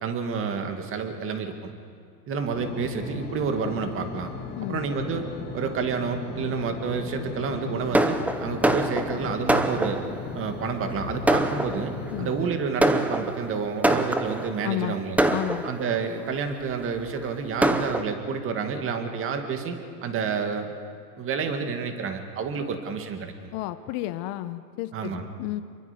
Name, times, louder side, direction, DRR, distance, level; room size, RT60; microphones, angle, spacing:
voice 1, 0.0-1.7 2.3-4.3 4.7-5.2 5.5-10.0 10.3-15.2 15.6-19.8 20.0-20.7 21.2-23.5 24.9-25.2, right 5 dB, 25° right, 5 dB, 2.4 m, -29 dB
sound 1, 2.5-12.5, left 5 dB, 20° left, 2.1 m, -37 dB
Fireworks, 7.9-10.3 10.9-11.0 11.3-12.1 12.8-14.6 15.2-16.1 16.8-16.9 17.2-17.3 17.6-18.0, right 1 dB, 5° right, 0.7 m, -24 dB
Bowed string instrument, 10.9-15.1, left 2 dB, 75° left, 4.4 m, -46 dB
voice 2, 14.6-15.0 15.3-15.7 23.5-25.6, left 15 dB, 40° left, 12 dB, 1.1 m, -31 dB
27.5 x 23.0 x 5.3 m, 2.2 s
hypercardioid pair, 125°, 48 cm